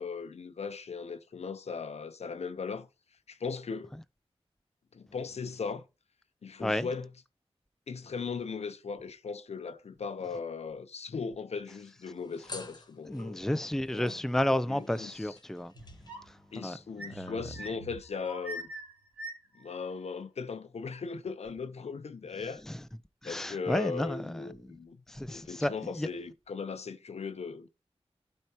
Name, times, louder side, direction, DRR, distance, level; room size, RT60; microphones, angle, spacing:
voice 1, 0.0-2.9 3.3-3.9 4.9-5.8 6.4-7.2 7.9-13.5 13.9-14.1 14.7-15.4 16.5-18.7 19.5-22.6 23.2-25.0 25.3-27.7, left 5 dB, 80° left, 0.6 m, -38 dB
sound 1, 11.8-13.5 13.8-17.0 17.2-17.7, left 2 dB, 40° left, 0.9 m, -50 dB
voice 2, 13.1-15.7 16.6-16.8 17.2-17.3 23.2-24.2 25.1-25.7 26.0-26.1, left 1 dB, 5° left, 0.4 m, -31 dB
sound 2, 15.7-16.4 16.9-19.7, right 1 dB, 15° right, 3.2 m, -43 dB
12.0 x 4.4 x 2.9 m
cardioid pair, 50°, 11 cm